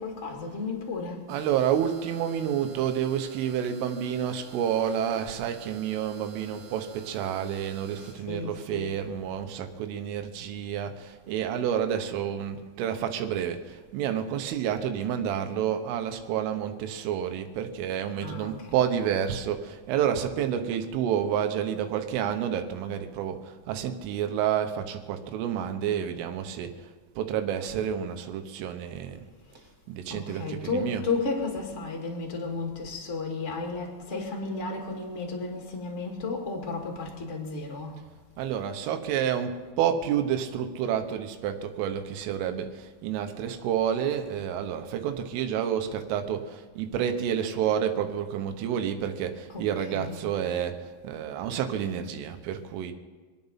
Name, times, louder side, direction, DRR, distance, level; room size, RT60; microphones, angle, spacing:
voice 1, 0.0-1.2 8.3-8.9 18.2-18.7 30.1-38.0 49.5-49.7 49.9-50.2, left 3 dB, 35° left, 1 dB, 1.1 m, -33 dB
Electric Power Transformer, 1.3-8.1, right 5 dB, 75° right, 3.6 m, -49 dB
voice 2, 1.3-29.3 29.9-31.1 38.4-52.9, right 9 dB, 90° right, 7 dB, 3.7 m, -29 dB
26.0 x 9.3 x 5.7 m, 1.4 s
omnidirectional pair, 5.6 m